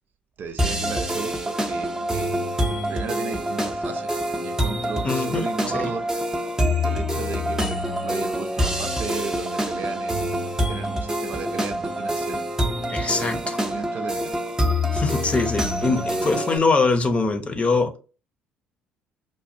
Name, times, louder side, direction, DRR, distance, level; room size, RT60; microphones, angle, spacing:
voice 1, 0.4-2.3 2.9-4.1 4.4-6.1 6.8-12.4 13.0-14.3, right 5 dB, 50° right, 0.5 m, -35 dB
sound 1, 0.6-16.6, equal, 15° right, 0.7 m, -26 dB
voice 2, 5.0-5.5 5.7-5.8 12.9-13.6 14.9-18.0, left 3 dB, 30° left, 0.7 m, -23 dB
5.0 x 2.3 x 2.7 m
hypercardioid pair, 55°, 4 cm